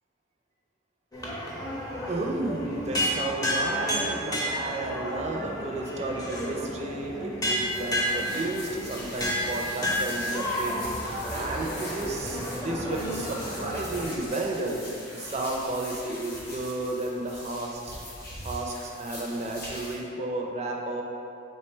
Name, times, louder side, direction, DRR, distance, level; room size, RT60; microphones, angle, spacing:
sound 1, 1.1-14.0, equal, 20° left, 0.6 m, -31 dB
voice 1, 2.1-14.8 15.1-18.0 18.4-21.0, right 2 dB, 35° right, 0 dB, 0.4 m, -32 dB
sound 2, 7.5-20.0, left 1 dB, 55° left, 1.4 m, -42 dB
3.3 x 3.2 x 4.4 m, 2.8 s
head